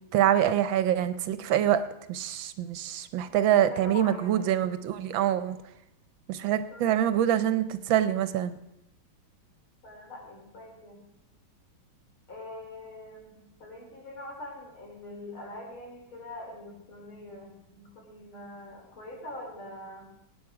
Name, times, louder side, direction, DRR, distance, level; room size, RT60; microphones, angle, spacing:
voice 1, 0.1-1.8 2.1-5.6 6.3-8.5, right 11 dB, 75° right, 13 dB, 1.4 m, -25 dB
voice 2, 3.3-4.6 6.5-6.9 9.8-11.0 12.3-20.1, left 1 dB, 80° left, -2 dB, 4.7 m, -44 dB
18.0 x 9.3 x 4.8 m, 0.85 s
omnidirectional pair, 2.3 m